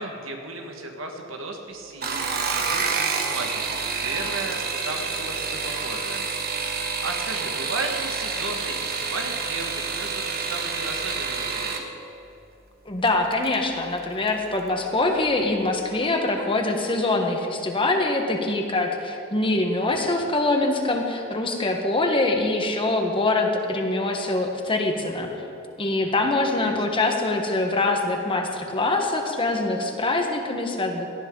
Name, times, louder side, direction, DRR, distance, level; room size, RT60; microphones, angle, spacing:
voice 1, 0.0-11.8 26.0-26.4 26.6-26.8, right 2 dB, 75° right, 3 dB, 1.7 m, -35 dB
sound 1, 1.9-11.9 13.1-13.6 14.0-14.4 14.7-14.8, right 5 dB, 50° right, 1.3 m, -28 dB
voice 2, 12.8-25.3 25.8-31.1, left 2 dB, 25° left, 3 dB, 1.4 m, -24 dB
18.5 x 13.0 x 3.9 m, 2.9 s
head